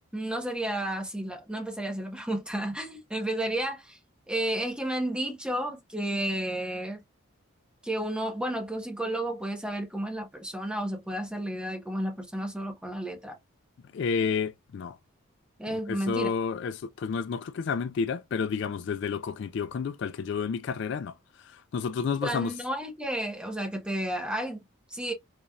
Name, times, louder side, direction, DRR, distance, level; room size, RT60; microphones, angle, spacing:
voice 1, 0.1-4.0 4.3-7.0 7.8-13.4 15.6-16.3 22.2-25.1, right 1 dB, 5° right, 1.0 m, -32 dB
voice 2, 13.9-15.0 15.9-21.1 21.5-22.5, left 5 dB, 55° left, 0.3 m, -30 dB
4.0 x 3.3 x 2.3 m
head